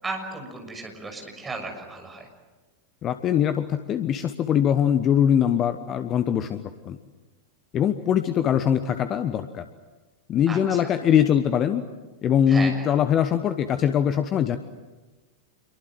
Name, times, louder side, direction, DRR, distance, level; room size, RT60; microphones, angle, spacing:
voice 1, 0.0-2.3 10.5-10.9 12.5-12.9, right 3 dB, 15° right, 3 dB, 6.7 m, -35 dB
voice 2, 3.0-7.0 7.7-9.6 10.3-11.8 12.2-14.6, left 9 dB, 30° left, 10 dB, 1.2 m, -22 dB
27.5 x 23.5 x 7.8 m, 1.2 s
figure-of-eight pair, 90°, 0 cm